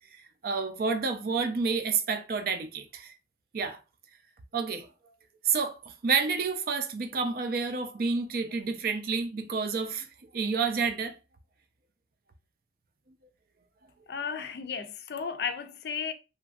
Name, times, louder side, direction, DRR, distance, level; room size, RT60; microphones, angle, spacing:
voice 1, 0.2-3.1 3.5-3.8 4.5-4.9 5.4-10.1 10.3-11.2, right 5 dB, 55° right, 0.4 m, -29 dB
voice 2, 14.1-16.1, left 6 dB, 65° left, 0.4 m, -34 dB
3.0 x 2.5 x 2.3 m
head